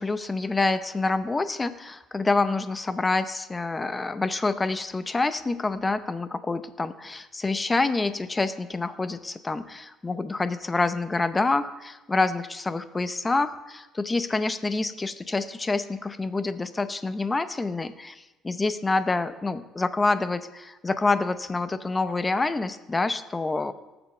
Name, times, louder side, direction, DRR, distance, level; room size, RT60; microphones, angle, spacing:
voice 1, 0.0-23.7, left 3 dB, 20° left, 12 dB, 0.6 m, -27 dB
19.0 x 6.9 x 4.3 m, 1.1 s
cardioid pair, 100°, 0 cm